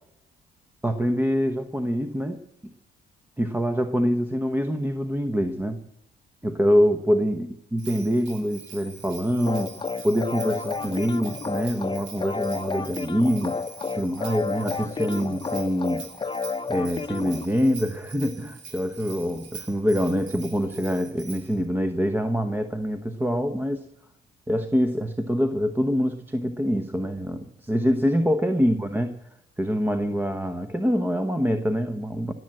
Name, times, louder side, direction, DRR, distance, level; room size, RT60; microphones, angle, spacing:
voice 1, 0.8-2.7 3.4-5.8 6.4-9.7 10.0-13.6 13.9-16.0 16.7-23.9 24.5-29.1 29.6-32.3, equal, 10° right, 7 dB, 1.0 m, -25 dB
Bell, 7.8-21.6, right 5 dB, 65° right, 3.4 m, -44 dB
sound 1, 9.5-17.5, left 4 dB, 25° left, 0.8 m, -31 dB
20.0 x 7.7 x 7.7 m, 0.80 s
cardioid pair, 90°, 20 cm